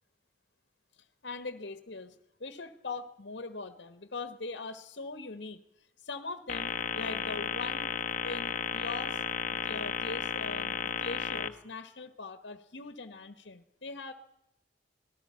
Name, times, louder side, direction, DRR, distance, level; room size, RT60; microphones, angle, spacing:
voice 1, 1.2-2.1 2.4-5.6 6.0-7.9 8.2-9.2 9.5-14.1, left 3 dB, 70° left, 11 dB, 1.2 m, -41 dB
sound 1, 6.5-11.5, left 6 dB, 40° left, 1.1 m, -33 dB
26.5 x 19.0 x 5.7 m, 0.84 s
head